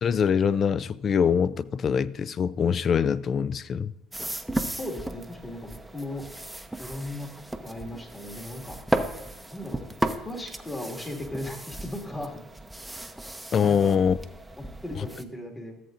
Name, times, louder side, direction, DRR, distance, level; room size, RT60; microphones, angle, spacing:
voice 1, 0.0-3.9 13.5-14.2, left 7 dB, 45° left, 0.3 m, -23 dB
sound 1, 4.1-15.2, right 1 dB, 5° right, 0.7 m, -35 dB
voice 2, 4.8-6.3 6.8-8.8 9.5-9.8 10.2-12.4 13.7-14.0 14.8-15.7, left 1 dB, 20° left, 2.1 m, -37 dB
14.0 x 7.5 x 2.6 m
hypercardioid pair, 65°, 0 cm